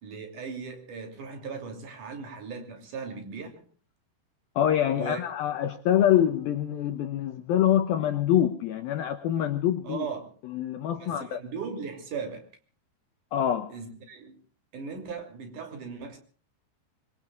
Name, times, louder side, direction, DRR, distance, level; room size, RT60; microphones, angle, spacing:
voice 1, 0.0-3.6 4.9-5.2 9.8-10.3 11.0-12.5 13.7-14.4 14.7-16.2, right 5 dB, 45° right, 3.9 m, -38 dB
voice 2, 4.6-10.1 10.4-11.4 13.3-13.7, left 10 dB, 85° left, 2.1 m, -25 dB
25.5 x 23.0 x 2.4 m
omnidirectional pair, 5.4 m